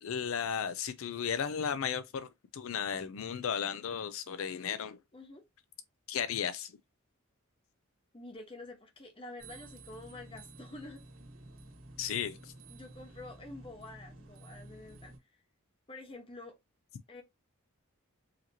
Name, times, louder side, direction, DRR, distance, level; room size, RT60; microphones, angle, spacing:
voice 1, 0.0-2.3 2.5-5.0 6.1-6.7 12.0-12.5, left 7 dB, 70° left, 0.4 m, -34 dB
voice 2, 5.1-5.4 8.1-11.0 12.7-15.1 15.9-16.6 17.1-17.2, left 2 dB, 25° left, 1.1 m, -48 dB
sound 1, 9.4-15.2, right 2 dB, 85° right, 1.7 m, -52 dB
4.9 x 2.9 x 2.8 m
head